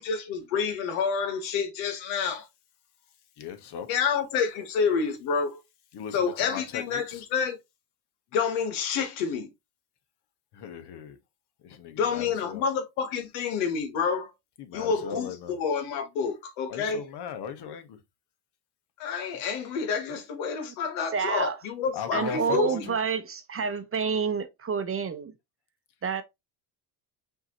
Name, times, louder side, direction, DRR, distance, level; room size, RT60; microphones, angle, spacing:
voice 1, 0.0-2.4 3.9-5.6 6.1-7.6 8.3-9.4 12.0-14.3 14.7-17.1 19.0-22.7, left 6 dB, 85° left, 1.3 m, -28 dB
voice 2, 3.4-3.9 5.9-7.2 10.6-11.2 11.6-12.6 14.6-15.5 16.7-18.0 21.9-23.0, left 7 dB, 60° left, 1.1 m, -38 dB
voice 3, 21.1-21.6 22.1-25.3 26.0-26.2, right 6 dB, 30° right, 0.7 m, -29 dB
5.7 x 2.8 x 2.9 m
supercardioid pair, 85°, 46 cm